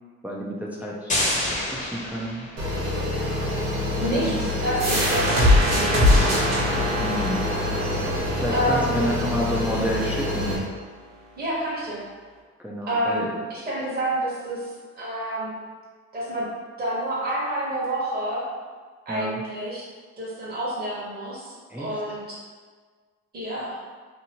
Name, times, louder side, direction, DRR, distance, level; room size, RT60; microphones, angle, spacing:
voice 1, 0.2-1.1 1.4-2.5 4.0-4.5 7.0-7.4 8.4-10.6 12.6-13.4 19.1-19.4 21.7-22.0, equal, 5° right, -3 dB, 0.4 m, -30 dB
sound 1, 1.1-2.9, left 1 dB, 25° left, 0.9 m, -28 dB
sound 2, 2.6-10.6, left 1 dB, 80° right, 1.0 m, -27 dB
voice 2, 4.0-5.3 5.7-6.4 8.4-9.2 11.4-12.0 12.9-14.7 14.9-15.6 16.1-16.5 16.8-18.5 19.0-19.9 20.2-22.4 23.3-23.8, right 1 dB, 30° right, -7 dB, 1.0 m, -28 dB
sound 3, 4.8-10.2, left 1 dB, 65° right, 1.1 m, -23 dB
2.8 x 2.5 x 2.8 m, 1.5 s
cardioid pair, 90°, 30 cm